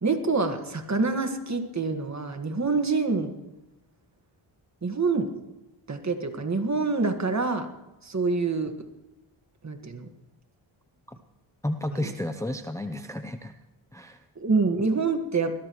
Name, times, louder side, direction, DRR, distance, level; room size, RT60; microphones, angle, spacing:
voice 1, 0.0-3.3 4.8-5.3 5.9-7.7 8.0-8.9 9.6-10.1 11.9-12.1 14.4-15.5, right 4 dB, 35° right, 6 dB, 1.8 m, -26 dB
voice 2, 11.6-13.5 13.9-14.2, left 1 dB, 5° left, 8 dB, 0.7 m, -32 dB
21.0 x 13.5 x 3.2 m, 0.98 s
cardioid pair, 65°, 50 cm